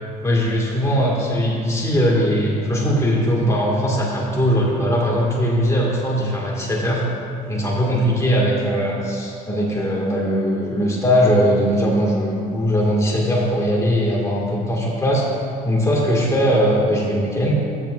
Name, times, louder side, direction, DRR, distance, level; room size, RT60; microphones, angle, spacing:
voice 1, 0.2-7.0 7.5-15.3 15.6-17.6, equal, 15° left, -4 dB, 1.8 m, -20 dB
13.0 x 9.6 x 2.5 m, 2.4 s
cardioid pair, 110°, 17 cm